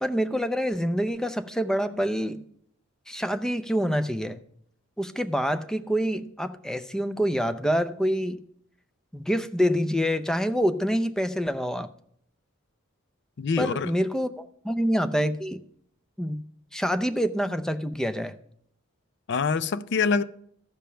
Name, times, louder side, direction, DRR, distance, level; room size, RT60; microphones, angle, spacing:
voice 1, 0.0-2.4 3.1-4.4 5.0-8.4 9.1-11.9 13.6-15.6 16.2-16.4 16.7-18.3, equal, 5° left, 0.5 m, -26 dB
voice 2, 13.4-13.9 19.3-20.2, left 5 dB, 55° left, 0.5 m, -25 dB
14.0 x 5.2 x 5.7 m
head